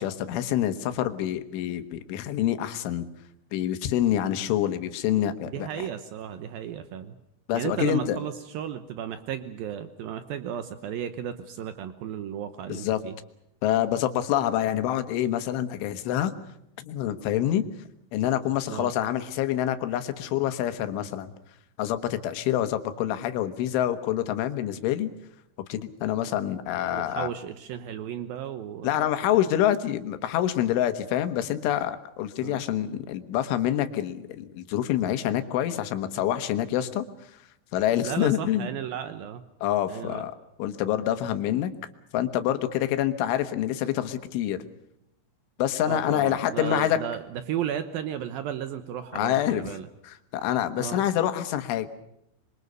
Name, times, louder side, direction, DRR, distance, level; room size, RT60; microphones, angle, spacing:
voice 1, 0.0-3.1 3.5-5.7 7.5-8.2 12.7-13.0 13.6-16.3 16.8-17.6 18.1-21.3 21.8-25.1 25.7-27.3 28.8-37.0 37.7-38.7 39.6-41.7 42.1-44.6 45.6-47.0 49.1-49.6 50.0-51.9, left 11 dB, 75° left, 10 dB, 3.7 m, -26 dB
voice 2, 5.5-7.2 7.5-13.2 18.7-18.9 26.9-29.0 32.4-32.6 38.0-39.5 39.9-40.2 45.9-49.9 50.8-51.1, right 10 dB, 90° right, 11 dB, 2.0 m, -34 dB
27.0 x 23.5 x 6.7 m, 0.77 s
omnidirectional pair, 5.7 m